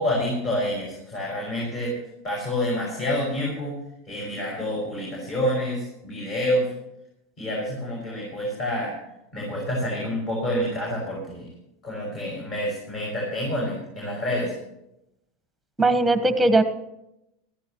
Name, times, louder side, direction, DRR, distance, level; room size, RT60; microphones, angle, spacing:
voice 1, 0.0-2.0 2.2-3.7 4.1-6.7 7.4-8.9 9.3-11.5 11.8-14.6, left 1 dB, 35° left, -3 dB, 5.9 m, -28 dB
voice 2, 15.8-16.6, right 2 dB, 5° right, 10 dB, 1.3 m, -19 dB
19.0 x 14.0 x 3.1 m, 0.85 s
supercardioid pair, 140°, 0 cm